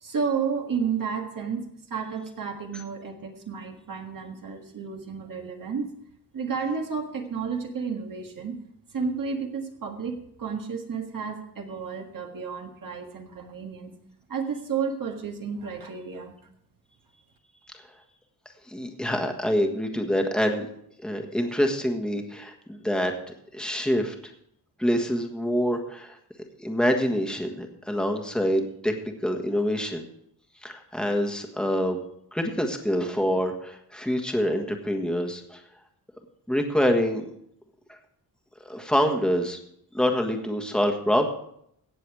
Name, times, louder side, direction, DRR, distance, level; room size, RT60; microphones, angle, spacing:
voice 1, 0.0-6.0 6.3-8.6 8.9-14.0 14.3-16.4, right 6 dB, 55° right, 2 dB, 1.7 m, -32 dB
voice 2, 18.7-20.7 21.0-23.1 23.5-24.1 24.8-26.2 26.6-28.9 29.2-30.0 30.6-32.0 32.3-35.6 36.5-37.3 37.9-38.0 38.6-39.6 39.9-41.3, equal, ahead, 3 dB, 1.5 m, -26 dB
17.5 x 7.1 x 4.8 m, 0.71 s
wide cardioid pair, 135°, 39 cm